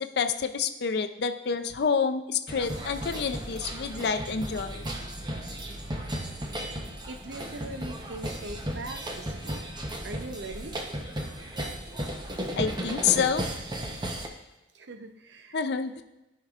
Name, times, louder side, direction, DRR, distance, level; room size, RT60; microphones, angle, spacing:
voice 1, 0.2-4.8 12.6-13.5 15.5-16.0, left 6 dB, 65° left, 8 dB, 0.5 m, -28 dB
sound 1, 2.5-14.3, right 1 dB, 25° right, 0.8 m, -35 dB
voice 2, 7.1-9.7 10.0-10.7 14.7-15.6, right 2 dB, 80° right, 6 dB, 0.7 m, -41 dB
14.0 x 5.4 x 2.4 m, 0.97 s
head